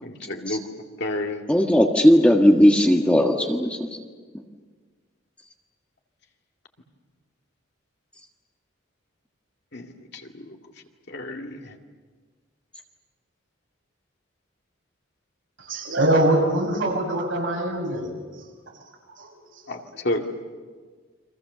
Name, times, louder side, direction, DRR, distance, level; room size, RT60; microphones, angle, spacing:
voice 1, 0.0-0.6 1.0-1.4 9.7-9.9 10.1-10.6 11.1-11.7 19.7-20.2, left 1 dB, 55° left, 3 dB, 2.3 m, -30 dB
voice 2, 1.5-3.8, equal, 5° left, 1 dB, 1.6 m, -17 dB
voice 3, 15.6-18.2 19.1-19.3 19.6-19.7, right 1 dB, 70° right, 0 dB, 7.2 m, -23 dB
30.0 x 24.5 x 6.9 m, 1.5 s
head